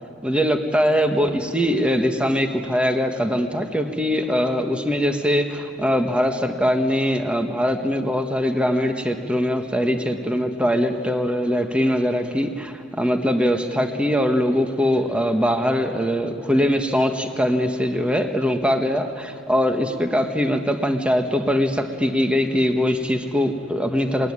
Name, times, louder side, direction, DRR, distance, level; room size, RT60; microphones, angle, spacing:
voice 1, 0.2-24.3, equal, 5° right, 5 dB, 1.4 m, -22 dB
20.5 x 19.0 x 9.7 m, 2.3 s
head